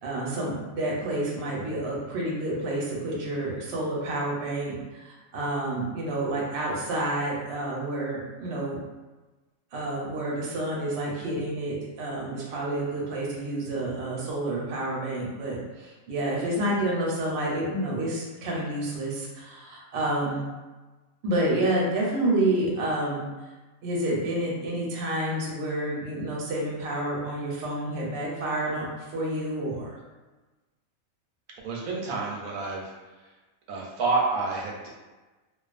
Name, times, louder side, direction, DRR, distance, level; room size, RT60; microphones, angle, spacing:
voice 1, 0.0-8.8 9.7-20.5 21.2-23.3 23.8-28.9 29.1-29.9, right 1 dB, 60° right, -4 dB, 0.8 m, -29 dB
voice 2, 31.6-32.8 33.7-34.9, right 3 dB, 85° right, -2 dB, 1.0 m, -28 dB
2.4 x 2.3 x 2.4 m, 1.2 s
omnidirectional pair, 1.5 m